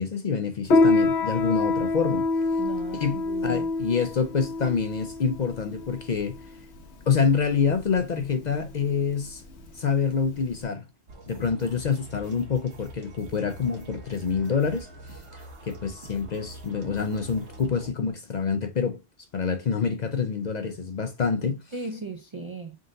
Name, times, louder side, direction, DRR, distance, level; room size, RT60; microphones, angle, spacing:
voice 1, 0.0-2.3 2.9-6.4 7.1-9.4 9.7-10.8 11.3-19.0 19.3-21.6, left 6 dB, 50° left, 0.5 m, -27 dB
Piano, 0.7-10.6, left 3 dB, 75° left, 1.1 m, -26 dB
voice 2, 2.6-3.7 9.6-9.7 21.7-22.8, right 4 dB, 55° right, 0.3 m, -37 dB
sound 1, 11.1-17.9, right 2 dB, 90° right, 1.4 m, -44 dB
3.8 x 2.6 x 3.8 m
omnidirectional pair, 1.1 m